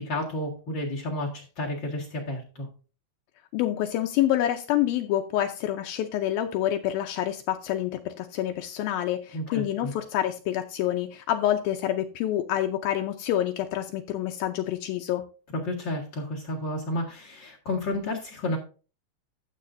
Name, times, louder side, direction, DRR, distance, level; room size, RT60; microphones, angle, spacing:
voice 1, 0.0-2.7 9.3-9.9 15.5-18.6, left 1 dB, 50° left, -2 dB, 1.4 m, -31 dB
voice 2, 3.5-15.2, left 12 dB, 85° left, 5 dB, 2.1 m, -27 dB
13.5 x 7.5 x 2.6 m, 0.35 s
omnidirectional pair, 5.0 m